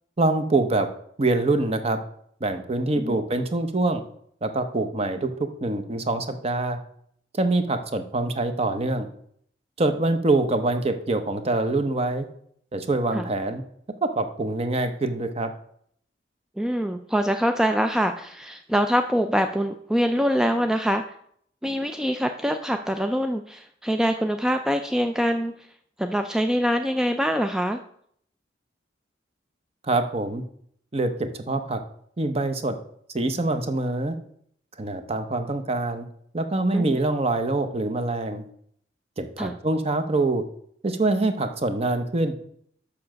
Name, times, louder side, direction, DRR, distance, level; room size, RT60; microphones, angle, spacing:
voice 1, 0.2-0.9 1.2-2.0 2.4-4.0 4.4-6.8 7.3-9.1 9.8-12.3 12.7-13.6 14.0-15.5 29.9-30.4 30.9-31.8 32.2-32.8 33.1-34.2 34.8-36.1 36.3-38.4 39.2-40.4 40.8-42.3, right 2 dB, 35° right, 8 dB, 0.8 m, -25 dB
voice 2, 16.6-21.0 21.6-25.5 26.0-27.8 36.7-37.0 39.4-39.5, equal, 5° right, 6 dB, 0.3 m, -24 dB
6.9 x 5.8 x 6.4 m, 0.66 s
head